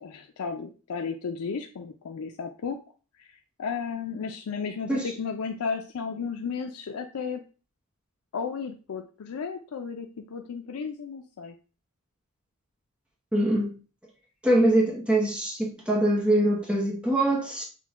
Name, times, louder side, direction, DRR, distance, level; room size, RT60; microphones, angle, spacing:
voice 1, 0.0-2.8 3.2-7.4 8.3-11.5, left 5 dB, 80° left, 0.4 m, -34 dB
voice 2, 13.3-13.7 14.4-17.6, right 1 dB, 5° right, 0.7 m, -23 dB
6.0 x 2.2 x 3.5 m
head